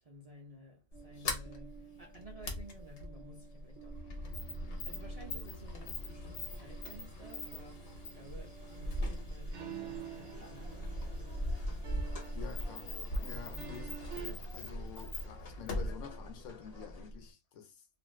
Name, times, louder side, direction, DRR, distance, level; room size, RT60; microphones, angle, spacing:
voice 1, 0.0-4.1 4.8-11.4 12.4-12.6 13.4-14.1, equal, 45° right, 0.5 m, -54 dB
Sliding door, 0.9-17.3, left 1 dB, 55° left, 1.0 m, -41 dB
sound 1, 0.9-14.3, right 9 dB, 70° right, 1.0 m, -51 dB
sound 2, 9.9-17.1, left 3 dB, 35° left, 0.7 m, -55 dB
voice 2, 12.3-14.0 14.5-17.9, left 7 dB, 80° left, 1.0 m, -49 dB
2.5 x 2.4 x 3.1 m
omnidirectional pair, 1.3 m